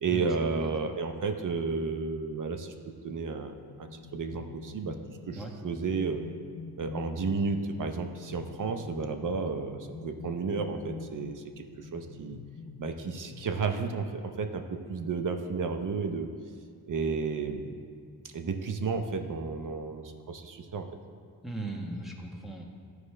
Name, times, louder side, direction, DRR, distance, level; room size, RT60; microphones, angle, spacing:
voice 1, 0.0-2.7 3.0-6.2 6.8-12.4 12.8-16.3 16.9-17.8 18.3-20.9, right 4 dB, 55° right, 6 dB, 0.7 m, -32 dB
sound 1, 3.6-14.1, left 5 dB, 60° left, 0.5 m, -46 dB
voice 2, 21.4-22.6, right 2 dB, ahead, -1 dB, 1.1 m, -38 dB
13.0 x 4.8 x 3.2 m, 2.1 s
cardioid pair, 90°, 38 cm